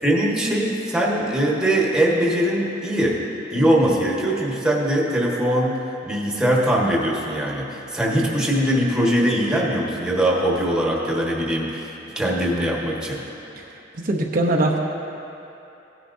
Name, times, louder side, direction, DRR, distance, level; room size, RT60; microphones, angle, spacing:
voice 1, 0.0-3.2 3.5-5.8 6.0-13.2, right 1 dB, 5° right, -4 dB, 1.4 m, -21 dB
voice 2, 14.0-14.8, right 1 dB, 55° right, -1 dB, 0.8 m, -21 dB
17.0 x 10.0 x 2.7 m, 2.9 s
head